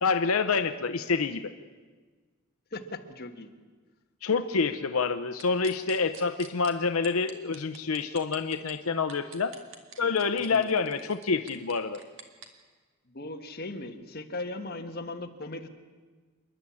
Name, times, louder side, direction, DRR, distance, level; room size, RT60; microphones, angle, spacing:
voice 1, 0.0-1.5 4.2-9.5 10.0-12.0, left 4 dB, 85° left, 9 dB, 0.8 m, -27 dB
voice 2, 2.7-3.5 10.5-10.8 13.1-15.7, left 2 dB, 50° left, 5 dB, 1.5 m, -38 dB
sound 1, 5.4-6.7 7.0-8.7 9.1-12.5, right 6 dB, 60° right, 2.1 m, -47 dB
27.5 x 11.0 x 8.6 m, 1.4 s
head